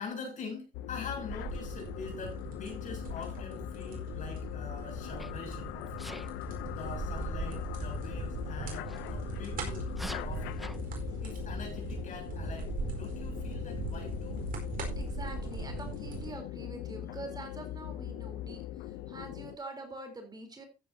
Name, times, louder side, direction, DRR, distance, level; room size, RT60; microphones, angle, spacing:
voice 1, 0.0-6.3 6.7-10.6 11.2-14.4, left 4 dB, 50° left, 7.3 m, -44 dB
sound 1, 0.7-19.6, left 13 dB, 90° left, 0.7 m, -41 dB
sound 2, 0.8-16.3, right 3 dB, 55° right, 4.6 m, -39 dB
Sneeze, 5.2-5.5 6.0-6.3 8.9-9.0 9.9-10.8, equal, ahead, 0.6 m, -43 dB
voice 2, 15.0-20.6, right 2 dB, 25° right, 3.9 m, -45 dB
14.5 x 10.0 x 2.8 m
cardioid pair, 110°, 17 cm